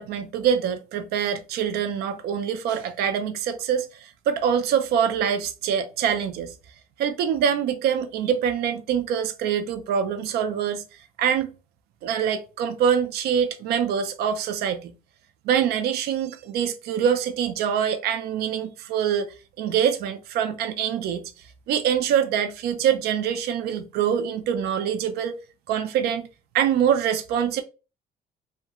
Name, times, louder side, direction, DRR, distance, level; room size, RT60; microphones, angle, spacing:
voice 1, 0.0-6.5 7.0-10.8 11.2-11.5 12.0-14.9 15.4-21.3 21.7-25.4 25.7-26.3 26.5-27.6, right 8 dB, 70° right, 0.4 m, -24 dB
2.2 x 2.1 x 2.9 m
cardioid pair, 110°, 17 cm